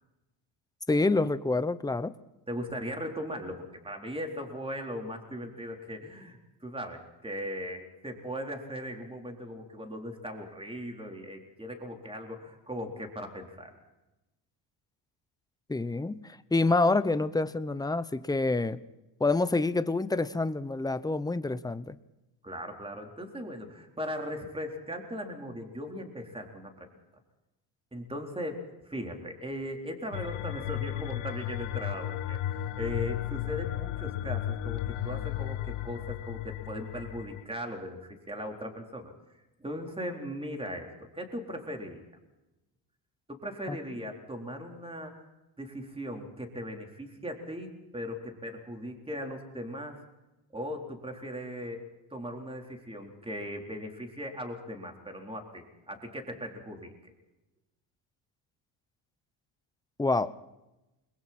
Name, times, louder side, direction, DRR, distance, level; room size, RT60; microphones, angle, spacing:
voice 1, 0.9-2.1 15.7-18.8 19.2-22.0 43.7-43.8 60.0-60.3, left 3 dB, 10° left, 13 dB, 0.8 m, -27 dB
voice 2, 2.5-13.7 22.4-26.9 27.9-39.1 39.6-42.0 43.3-45.1 45.6-50.0 50.5-51.8 52.1-57.1, equal, 10° right, 2 dB, 3.9 m, -38 dB
sound 1, 30.1-37.4, left 13 dB, 85° left, 1.3 m, -34 dB
29.0 x 22.0 x 4.4 m, 0.98 s
cardioid pair, 105°, 50 cm